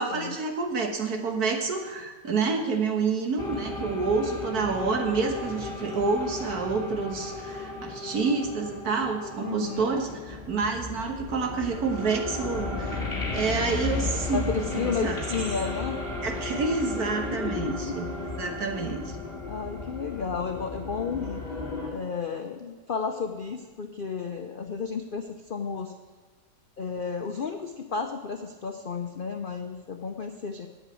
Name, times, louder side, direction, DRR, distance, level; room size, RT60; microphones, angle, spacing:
voice 1, 0.0-13.0 13.3-15.2 16.2-18.1 18.4-19.2, right 4 dB, 60° right, 3 dB, 1.8 m, -28 dB
sound 1, 3.4-21.9, left 3 dB, 35° left, 2.4 m, -34 dB
voice 2, 9.4-9.9 14.3-16.0 17.2-18.0 18.2-19.1 19.4-21.4 21.9-25.9 26.8-30.7, left 5 dB, 60° left, 4 dB, 0.5 m, -33 dB
8.1 x 8.1 x 8.9 m, 1.3 s
omnidirectional pair, 1.8 m